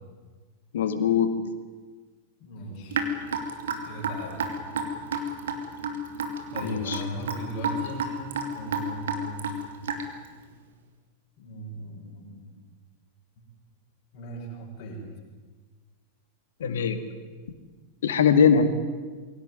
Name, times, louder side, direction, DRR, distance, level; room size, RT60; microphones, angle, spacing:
voice 1, 0.7-1.3 6.6-7.0 16.6-17.0 18.0-18.6, left 7 dB, 60° left, 9 dB, 2.1 m, -21 dB
voice 2, 2.4-3.0 3.8-4.5 6.5-8.2 8.5-9.5 11.4-12.5 13.4-13.5 14.1-15.0, equal, 45° left, -2 dB, 5.6 m, -38 dB
Raindrop / Drip, 2.9-10.3, right 3 dB, 65° right, 2.7 m, -30 dB
23.0 x 17.5 x 9.4 m, 1.4 s
figure-of-eight pair, 90°, 0 cm